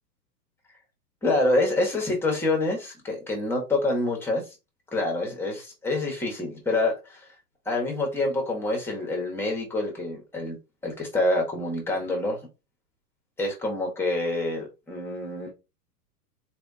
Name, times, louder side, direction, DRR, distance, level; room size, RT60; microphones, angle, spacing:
voice 1, 1.2-4.4 4.9-7.3 7.6-10.6 10.8-12.4 13.4-15.5, left 2 dB, 5° left, 1.2 m, -26 dB
3.9 x 3.3 x 2.7 m
hypercardioid pair, 135°, 49 cm